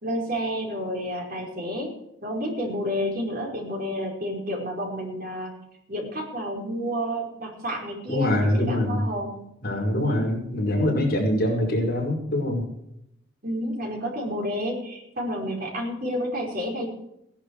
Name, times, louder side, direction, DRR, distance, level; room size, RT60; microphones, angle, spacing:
voice 1, 0.0-1.9 2.2-5.5 5.9-9.5 9.9-10.3 13.4-16.9, equal, 45° right, 0 dB, 5.0 m, -30 dB
voice 2, 8.1-9.1 9.6-12.6, left 1 dB, 50° left, -1 dB, 5.1 m, -24 dB
18.0 x 11.0 x 4.8 m, 0.78 s
head